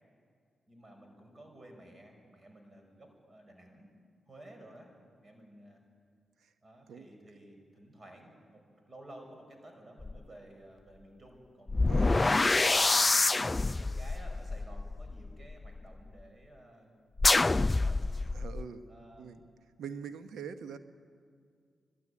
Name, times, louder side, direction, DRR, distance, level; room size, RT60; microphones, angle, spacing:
voice 1, 0.7-3.9 4.3-4.9 5.2-5.8 6.6-16.9 17.2-18.1 18.9-19.5, right 1 dB, 40° right, 3 dB, 5.1 m, -54 dB
sound 1, 10.0-10.2 11.7-15.8 17.2-18.6, left 3 dB, 30° left, 0.4 m, -27 dB
voice 2, 11.9-12.2 18.3-18.8 19.2-19.4 19.8-20.8, right 6 dB, 80° right, 10 dB, 1.1 m, -43 dB
21.0 x 12.5 x 9.9 m, 2.2 s
supercardioid pair, 45°, 0 cm